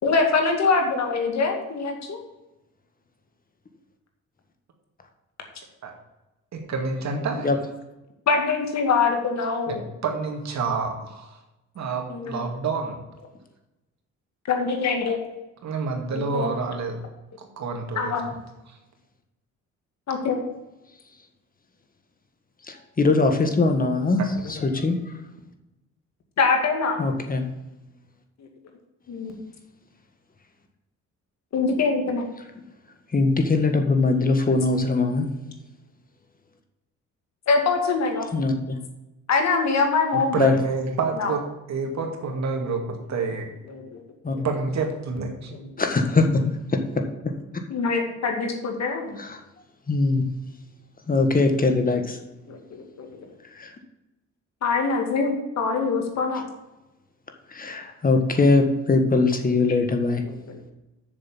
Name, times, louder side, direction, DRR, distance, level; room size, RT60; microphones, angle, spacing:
voice 1, 0.0-2.2 8.3-9.8 12.1-12.4 14.5-15.2 16.1-16.5 18.0-18.3 20.1-20.4 26.4-27.0 29.1-29.4 31.5-32.3 37.5-38.3 39.3-40.4 41.2-41.3 43.7-44.0 44.3-44.5 47.7-49.2 52.5-53.1 54.6-56.4 60.2-60.7, left 4 dB, 60° left, 3 dB, 2.3 m, -24 dB
voice 2, 6.5-7.5 9.7-11.4 11.8-13.0 15.6-17.0 17.4-18.2 18.7-18.8 24.2-24.3 40.3-43.5 44.4-45.5, right 4 dB, 65° right, 2 dB, 2.2 m, -28 dB
voice 3, 22.7-24.2 24.5-25.0 27.0-27.4 33.1-35.3 38.3-38.8 40.4-40.5 44.2-44.5 45.8-46.4 46.7-46.8 49.2-49.4 49.9-50.2 51.1-52.2 53.5-53.7 57.5-60.2, left 3 dB, 30° left, 5 dB, 1.6 m, -21 dB
7.3 x 6.7 x 7.3 m, 0.98 s
cardioid pair, 90°, 30 cm